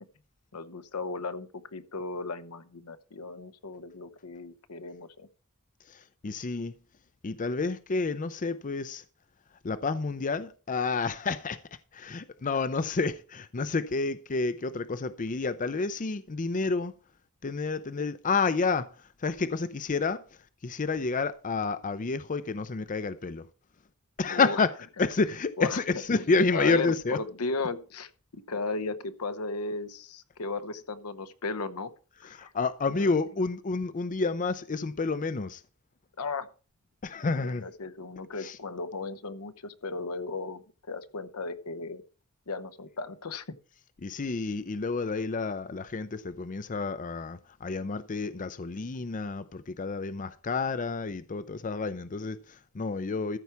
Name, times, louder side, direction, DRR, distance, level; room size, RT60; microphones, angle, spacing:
voice 1, 0.5-5.3 24.3-24.6 25.6-31.9 32.2-32.5 32.9-33.1 36.2-36.5 37.2-42.0 42.5-43.6, left 3 dB, 80° left, 0.9 m, -36 dB
voice 2, 5.9-6.8 7.2-9.0 9.6-11.6 11.9-16.9 17.4-20.2 20.6-23.5 24.2-24.7 25.0-27.2 32.3-35.6 37.0-37.7 38.4-38.6 44.0-53.4, left 4 dB, 35° left, 0.5 m, -29 dB
14.0 x 4.6 x 7.0 m
head